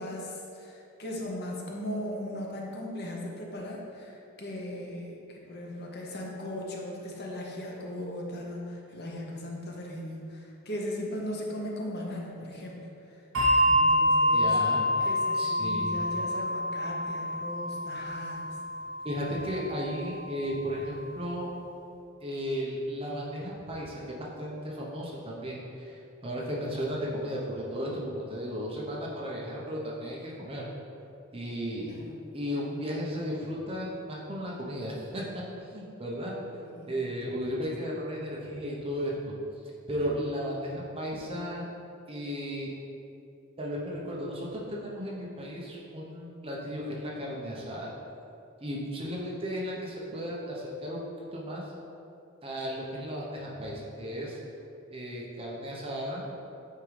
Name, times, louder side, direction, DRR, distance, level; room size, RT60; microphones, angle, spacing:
voice 1, 0.0-12.9 13.7-14.6 15.0-18.6 31.9-32.2 36.6-36.9 49.0-49.1, left 1 dB, 50° left, -2 dB, 0.8 m, -38 dB
Bell, 13.3-20.2, left 1 dB, 65° right, 1.3 m, -27 dB
voice 2, 14.3-15.9 19.0-21.5 22.2-30.7 31.3-32.0 32.3-36.3 36.9-39.4 39.9-41.7 42.1-42.7 43.6-47.9 48.6-51.0 51.3-51.6 52.4-54.4 54.9-56.2, equal, 25° right, -4 dB, 0.8 m, -35 dB
8.3 x 3.7 x 3.2 m, 2.7 s
head